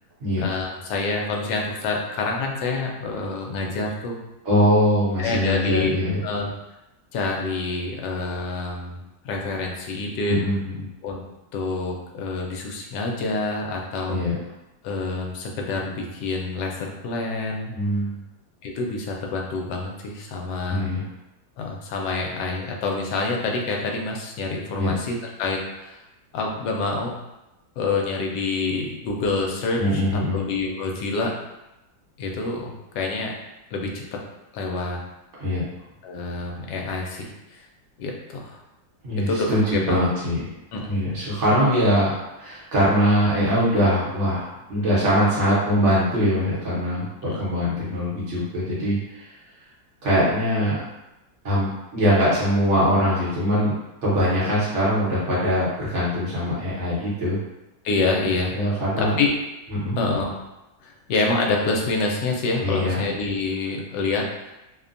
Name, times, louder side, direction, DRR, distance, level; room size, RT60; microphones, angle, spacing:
voice 1, 0.4-4.2 5.2-5.9 6.2-6.5 7.1-10.4 11.0-11.2 11.5-14.2 14.8-17.8 18.6-20.9 21.6-26.0 26.3-27.1 27.8-31.3 32.2-33.3 33.7-34.2 34.5-35.0 36.0-37.6 38.0-38.6 39.2-40.0 40.7-40.9 47.3-47.4 57.8-59.3 60.0-60.4 60.8-64.5, left 3 dB, 75° left, 0 dB, 1.1 m, -27 dB
voice 2, 4.4-6.2 10.3-10.9 14.1-14.3 17.7-18.2 20.7-21.0 24.8-24.9 29.8-30.4 35.4-35.6 39.0-40.5 40.9-49.3 50.0-50.8 51.4-53.7 54.0-57.4 58.5-59.1 59.7-60.0 62.6-63.0, equal, 50° right, -8 dB, 1.0 m, -22 dB
3.0 x 2.1 x 2.5 m, 0.95 s
omnidirectional pair, 2.0 m